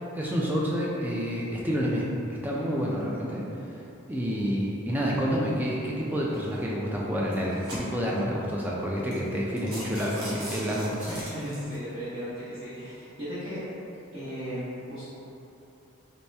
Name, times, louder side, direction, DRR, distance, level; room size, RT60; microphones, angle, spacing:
voice 1, 0.1-3.4 4.1-11.2, equal, 10° right, -4 dB, 0.3 m, -28 dB
sound 1, 6.3-6.6 7.2-8.2 8.7-8.8 9.1-9.3 9.6-11.8, equal, 80° right, 1.1 m, -40 dB
voice 2, 11.1-13.7 14.1-15.0, equal, 30° right, -15 dB, 0.9 m, -36 dB
3.1 x 2.9 x 3.3 m, 2.9 s
head